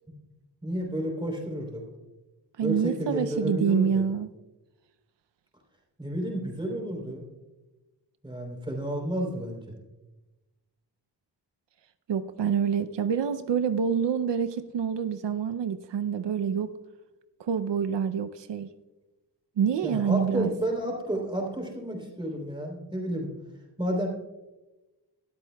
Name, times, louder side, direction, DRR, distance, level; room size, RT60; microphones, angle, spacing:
voice 1, 0.6-1.8 2.6-4.0 6.0-7.2 8.2-9.6 19.8-23.3 23.8-24.1, equal, 10° right, 0 dB, 3.3 m, -31 dB
voice 2, 2.6-4.3 12.1-16.7 17.4-18.7 19.6-20.5, right 7 dB, 85° right, 9 dB, 0.6 m, -27 dB
20.0 x 13.0 x 2.3 m, 1.1 s
wide cardioid pair, 150°, 42 cm